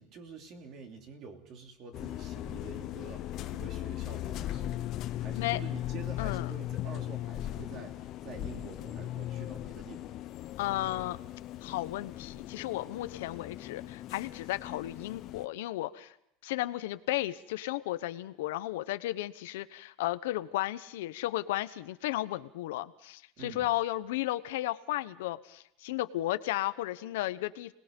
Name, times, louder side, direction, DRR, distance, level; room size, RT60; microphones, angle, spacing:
voice 1, 0.0-4.9 5.2-10.1 23.4-23.6, right 4 dB, 40° right, 4 dB, 3.0 m, -47 dB
sound 1, 1.9-15.5, left 13 dB, 40° left, 0.9 m, -38 dB
voice 2, 6.2-6.5 10.6-11.2 11.6-16.1 16.4-27.7, left 16 dB, 85° left, 13 dB, 1.0 m, -34 dB
29.5 x 20.0 x 5.4 m, 0.78 s
supercardioid pair, 160°, 0 cm